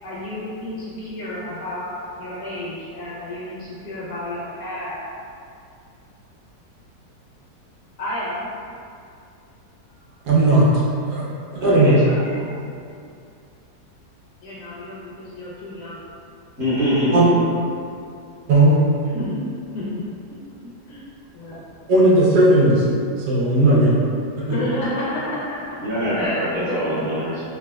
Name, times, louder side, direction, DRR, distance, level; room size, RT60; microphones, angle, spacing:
voice 1, 0.0-5.0 8.0-8.5 14.4-16.0 19.1-19.4 19.7-21.0 21.3-21.6 24.4-25.8 26.1-27.3, left 1 dB, 75° left, -8 dB, 1.1 m, -31 dB
voice 2, 10.2-10.7 11.0-11.2 11.5-12.0 17.1-17.3 18.5-18.8 21.9-22.9 23.3-24.0 24.4-24.5, right 2 dB, 70° right, -5 dB, 1.2 m, -15 dB
voice 3, 11.6-12.5 16.6-17.3 25.8-27.4, equal, 5° left, -16 dB, 1.0 m, -23 dB
3.4 x 2.7 x 2.2 m, 2.4 s
omnidirectional pair, 1.9 m